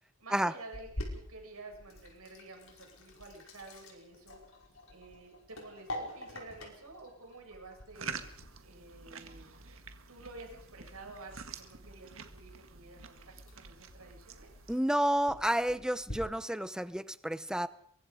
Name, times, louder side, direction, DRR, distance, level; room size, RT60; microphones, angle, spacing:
voice 1, 0.2-4.4 4.9-8.1 8.6-9.6 10.1-13.2 13.6-14.5, right 2 dB, 80° right, 3 dB, 7.1 m, -50 dB
Sink (filling or washing), 0.7-16.1, left 1 dB, 65° left, 5.5 m, -48 dB
sound 1, 7.9-14.8, right 5 dB, 65° right, 1.8 m, -47 dB
voice 2, 14.7-17.7, right 1 dB, 5° right, 14 dB, 0.8 m, -30 dB
23.5 x 23.0 x 5.1 m, 0.65 s
head